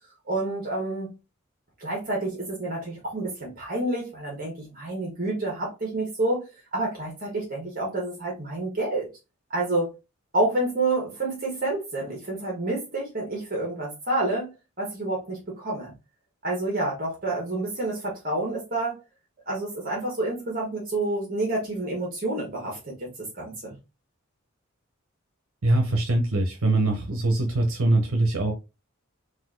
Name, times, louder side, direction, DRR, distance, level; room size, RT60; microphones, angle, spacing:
voice 1, 0.3-1.1 1.8-6.4 6.7-9.1 9.5-9.9 10.3-15.9 16.4-18.9 19.5-23.1 23.3-23.7, right 2 dB, 40° right, -3 dB, 1.5 m, -28 dB
voice 2, 25.6-28.5, right 2 dB, 85° right, 2 dB, 0.8 m, -23 dB
4.1 x 2.6 x 3.8 m, 0.27 s
head